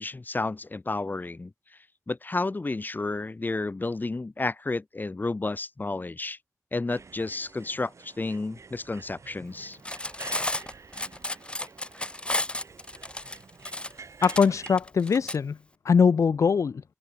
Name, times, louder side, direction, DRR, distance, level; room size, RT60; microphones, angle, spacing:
voice 1, 0.0-1.5 2.1-6.4 6.7-9.8, left 3 dB, 35° left, 1.4 m, -31 dB
sound 1, 6.9-14.8, right 5 dB, 65° right, 4.9 m, -49 dB
Cutlery silverware, 9.7-15.4, left 1 dB, 20° left, 2.3 m, -32 dB
voice 2, 14.2-15.6 15.8-16.8, left 6 dB, 70° left, 0.6 m, -22 dB
open air
wide cardioid pair, 70°, 5 cm